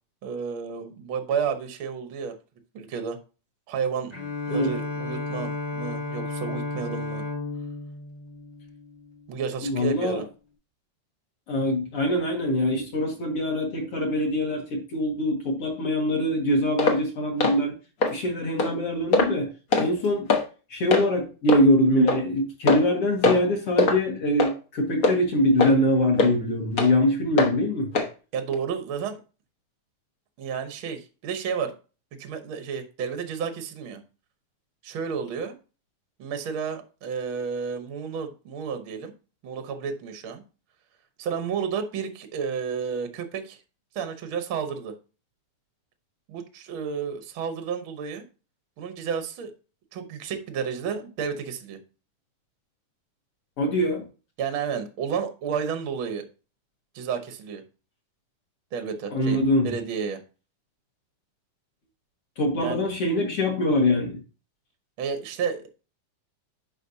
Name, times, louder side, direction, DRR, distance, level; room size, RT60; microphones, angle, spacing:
voice 1, 0.2-2.3 2.7-3.2 3.7-4.1 4.5-7.2 9.3-10.3 28.3-29.2 30.4-31.7 32.2-34.0 34.8-35.5 36.2-39.1 39.4-40.4 41.2-43.6 43.9-44.9 46.3-48.2 48.8-49.5 49.9-51.8 54.4-56.3 56.9-57.6 58.7-60.2 62.6-62.8 65.0-65.7, right 6 dB, 65° right, 7 dB, 1.3 m, -31 dB
Bowed string instrument, 4.1-9.4, left 3 dB, 25° left, 0.8 m, -33 dB
voice 2, 9.6-10.2 11.5-17.7 18.1-19.5 19.8-20.3 20.7-27.9 53.6-54.0 59.1-59.7 62.4-64.2, left 1 dB, 50° left, 0 dB, 2.4 m, -23 dB
sound 1, 16.8-17.0 17.4-17.6 18.0-18.1 18.6-18.7 19.1-19.4 19.7-19.9 20.3-20.4 20.9-21.1 21.5-21.6 22.1-22.2 22.7-22.9 23.2-23.5 23.8-24.0 24.4-24.5 25.0-25.2 25.6-25.7 26.2-26.3 26.8-26.9 27.4-27.5 27.9-28.1 28.5-28.6, left 3 dB, 75° left, 0.8 m, -21 dB
9.9 x 5.5 x 2.8 m, 0.33 s
omnidirectional pair, 3.7 m